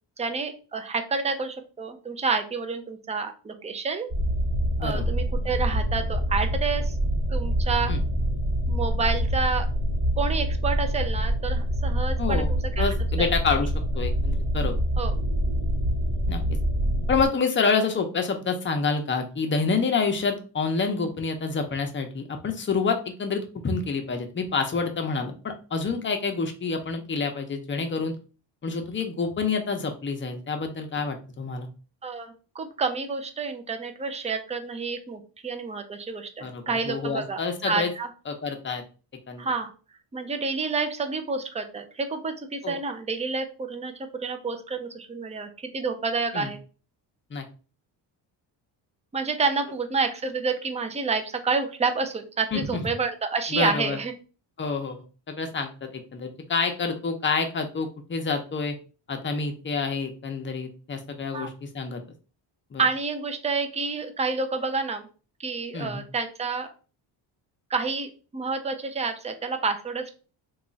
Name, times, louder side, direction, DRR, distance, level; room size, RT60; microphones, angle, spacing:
voice 1, 0.2-4.1 4.8-7.0 7.3-7.9 8.7-9.7 10.2-12.8 13.2-13.3 15.0-15.1 32.0-38.1 39.4-39.7 40.1-46.6 49.1-54.1 61.3-61.5 62.8-65.1 65.4-66.7 67.7-70.1, right 4 dB, 15° right, 7 dB, 0.4 m, -29 dB
sound 1, 4.1-17.3, equal, 35° right, 1.1 m, -25 dB
voice 2, 12.2-12.5 12.8-14.8 16.3-16.4 17.1-28.2 28.6-31.7 36.4-37.9 38.3-38.8 39.3-39.5 42.6-42.8 46.3-46.5 47.3-47.4 52.5-52.8 53.5-54.0 54.6-58.8 59.1-62.0 62.7-62.8 65.7-66.0, left 4 dB, 25° left, 5 dB, 0.6 m, -28 dB
3.0 x 2.3 x 3.9 m, 0.36 s
cardioid pair, 130°, 43 cm